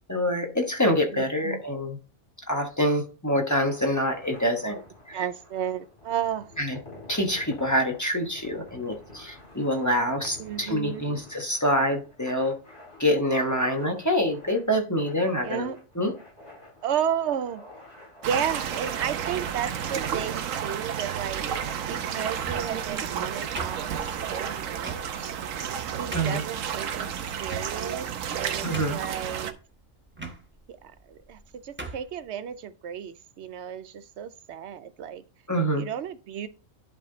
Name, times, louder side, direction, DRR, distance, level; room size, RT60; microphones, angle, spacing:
voice 1, 0.1-2.0 2.5-4.8 5.1-5.2 6.6-6.8 7.1-12.6 13.0-15.7 16.0-16.1 26.1-26.4 28.6-29.0 35.5-35.9, equal, 15° left, 1.0 m, -26 dB
voice 2, 1.1-1.6 5.1-6.5 10.4-11.2 15.4-15.8 16.8-17.6 18.3-21.4 21.9-25.3 26.0-27.1 27.4-28.1 28.4-29.6 30.7-35.2 35.8-36.5, right 9 dB, 65° right, 0.9 m, -33 dB
sound 1, 3.4-20.4, left 2 dB, 65° left, 4.6 m, -49 dB
sound 2, 18.2-29.5, right 8 dB, 85° right, 1.1 m, -31 dB
sound 3, 22.3-22.8 23.6-24.2 24.8-25.0 25.6-25.7 26.1-26.5 27.4-28.0 28.4-28.5 28.7-29.2 30.1-30.4 31.2-31.4 31.8-32.1, right 3 dB, 10° right, 1.0 m, -37 dB
11.0 x 3.7 x 3.8 m
omnidirectional pair, 1.3 m